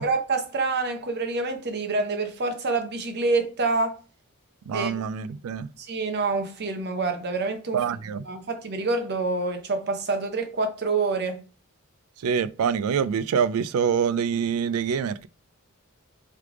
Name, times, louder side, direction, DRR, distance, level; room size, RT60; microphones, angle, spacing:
voice 1, 0.0-4.0 4.7-5.0 5.8-7.8 8.3-11.4, right 3 dB, 50° right, 0.7 m, -27 dB
voice 2, 4.7-5.7 7.7-8.2 12.2-15.3, right 7 dB, 80° right, 0.3 m, -25 dB
3.3 x 3.3 x 3.6 m
head